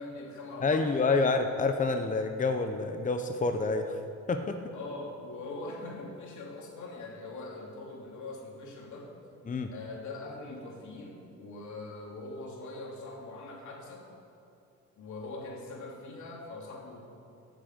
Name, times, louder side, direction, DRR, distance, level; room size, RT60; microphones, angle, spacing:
voice 1, 0.0-1.3 4.7-9.1 9.7-14.1 15.0-17.0, left 2 dB, 75° left, -1 dB, 2.9 m, -42 dB
voice 2, 0.6-4.0 4.3-4.7 9.5-9.7, left 3 dB, 25° left, 6 dB, 0.8 m, -28 dB
16.5 x 8.2 x 6.6 m, 2.7 s
cardioid pair, 90°, 30 cm